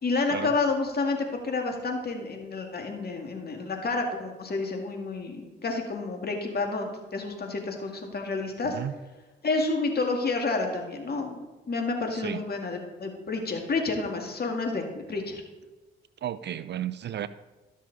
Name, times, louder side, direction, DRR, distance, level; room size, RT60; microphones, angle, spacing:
voice 1, 0.0-8.8 9.4-11.4 11.7-15.4, left 3 dB, 50° left, 3 dB, 2.2 m, -29 dB
voice 2, 8.6-8.9 12.1-12.4 16.2-17.3, right 11 dB, 55° right, 15 dB, 0.5 m, -33 dB
13.0 x 6.3 x 4.1 m, 1.2 s
supercardioid pair, 55°, 21 cm